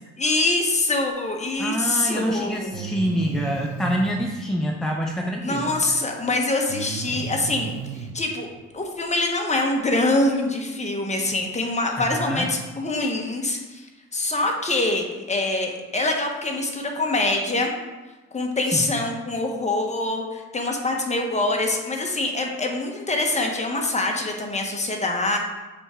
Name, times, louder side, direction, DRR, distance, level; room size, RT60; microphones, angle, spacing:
voice 1, 0.2-2.9 5.4-8.5 8.7-13.9 14.1-17.7 18.3-25.4, left 2 dB, 25° left, 1 dB, 1.1 m, -24 dB
voice 2, 1.6-6.0 12.0-12.5 18.7-18.9, equal, ahead, 0 dB, 0.6 m, -26 dB
Breathing, 1.8-1.9 2.7-4.2 6.7-8.2, right 7 dB, 70° right, 0.6 m, -33 dB
6.8 x 3.6 x 4.3 m, 1.2 s
cardioid pair, 90°, 30 cm